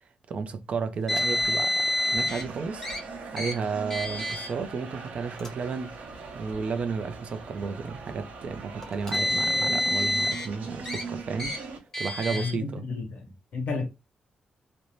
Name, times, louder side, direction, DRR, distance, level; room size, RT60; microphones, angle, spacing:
voice 1, 0.3-2.9 3.3-6.0 6.3-11.5 12.0-12.8, right 5 dB, 50° right, 0.5 m, -32 dB
Car, 1.1-2.4 2.8-3.0 3.4-3.5 3.9-4.5 5.3-5.5 6.4-6.5 8.8-10.5 10.9-11.0 11.4-11.6 11.9-12.5, equal, 15° left, 0.8 m, -27 dB
sound 1, 1.1-11.8, right 4 dB, 80° right, 0.9 m, -41 dB
voice 2, 12.3-13.9, left 4 dB, 70° left, 0.9 m, -32 dB
2.5 x 2.1 x 3.0 m
wide cardioid pair, 140°, 3 cm